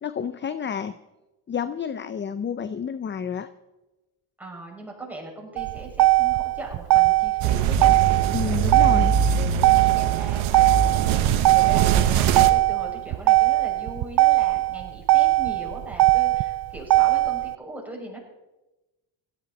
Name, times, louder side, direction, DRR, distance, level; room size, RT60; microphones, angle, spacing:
voice 1, 0.0-0.9 1.5-3.5 8.3-9.1, left 7 dB, 25° left, 13 dB, 0.5 m, -29 dB
voice 2, 4.4-8.0 8.4-9.4 9.7-18.2, right 2 dB, 5° right, -3 dB, 6.2 m, -39 dB
Motor vehicle (road), 5.6-17.5, right 18 dB, 50° right, 0.5 m, -20 dB
sound 1, 7.4-12.5, right 8 dB, 75° right, 1.3 m, -22 dB
17.0 x 13.5 x 4.2 m, 1.0 s
cardioid pair, 100°, 49 cm